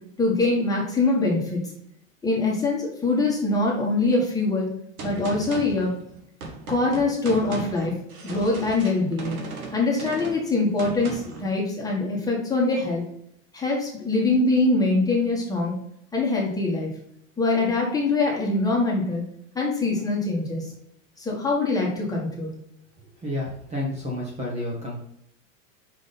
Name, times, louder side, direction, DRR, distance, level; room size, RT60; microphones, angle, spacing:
voice 1, 0.2-1.6 2.2-4.7 5.0-5.9 6.7-8.0 8.2-9.4 9.7-13.0 13.5-15.8 16.1-16.9 17.4-19.2 19.5-20.6 21.2-22.5, left 3 dB, 10° left, -3 dB, 1.6 m, -23 dB
Gunshot gunfire, 5.0-11.5, right 3 dB, 85° right, 2.0 m, -37 dB
voice 2, 23.2-25.0, left 1 dB, 15° right, -3 dB, 1.3 m, -30 dB
6.1 x 5.2 x 4.2 m, 0.74 s
supercardioid pair, 145°, 42 cm